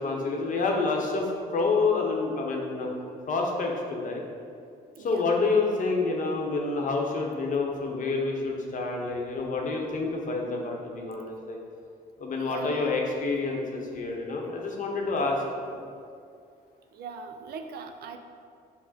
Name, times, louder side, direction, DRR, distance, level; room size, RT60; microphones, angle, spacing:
voice 1, 0.0-2.9 3.3-4.2 5.0-11.6 12.2-15.8, left 3 dB, 50° left, 1 dB, 0.8 m, -28 dB
voice 2, 5.0-5.3 12.4-13.0 16.9-18.2, right 5 dB, 65° right, 6 dB, 0.4 m, -41 dB
6.1 x 2.1 x 4.0 m, 2.3 s
supercardioid pair, 75°, 17 cm